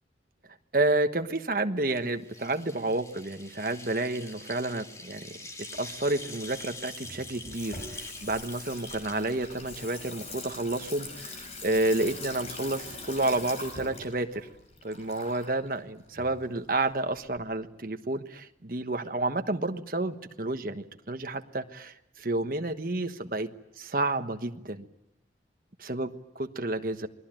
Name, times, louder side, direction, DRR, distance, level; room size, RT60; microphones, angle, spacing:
voice 1, 0.7-5.3 5.8-14.5 14.8-23.5 23.8-24.9 25.8-26.1 26.4-27.1, right 2 dB, 50° right, 7 dB, 1.3 m, -30 dB
sound 1, 1.9-10.3, left 2 dB, 20° left, 2.4 m, -45 dB
Water tap faucet / Sink (filling or washing), 5.7-17.4, left 2 dB, 35° left, 5.4 m, -43 dB
28.5 x 20.0 x 9.0 m, 0.87 s
head